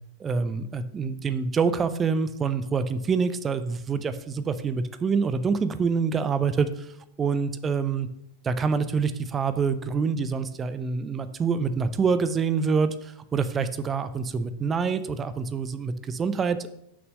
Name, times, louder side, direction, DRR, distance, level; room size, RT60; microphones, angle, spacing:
voice 1, 0.2-6.9 7.2-8.1 8.4-16.7, right 5 dB, 20° right, 12 dB, 0.7 m, -26 dB
6.2 x 6.1 x 7.3 m, 0.77 s
figure-of-eight pair, 90°, 0 cm